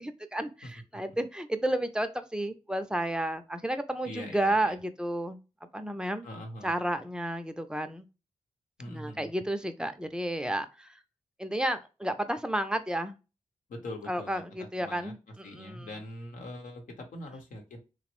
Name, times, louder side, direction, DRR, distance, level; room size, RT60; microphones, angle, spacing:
voice 1, 0.0-5.4 5.7-6.3 6.6-8.1 8.8-11.0 11.4-13.2 14.1-15.9, right 1 dB, 5° right, 0.4 m, -32 dB
voice 2, 4.0-4.8 6.2-6.7 8.8-9.3 13.7-14.4 14.8-15.1 15.4-17.8, left 1 dB, 85° left, 0.9 m, -42 dB
3.1 x 2.0 x 3.0 m
cardioid pair, 60°, 13 cm